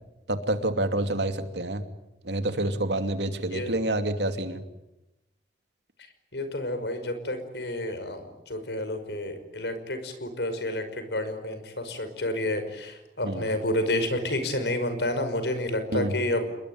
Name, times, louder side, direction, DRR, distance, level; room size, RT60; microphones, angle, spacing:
voice 1, 0.3-1.8 2.2-4.6 13.2-13.4 15.9-16.1, right 1 dB, 80° right, 8 dB, 2.7 m, -28 dB
voice 2, 6.3-16.4, left 1 dB, 80° left, 9 dB, 5.6 m, -30 dB
28.5 x 21.5 x 9.6 m, 0.92 s
head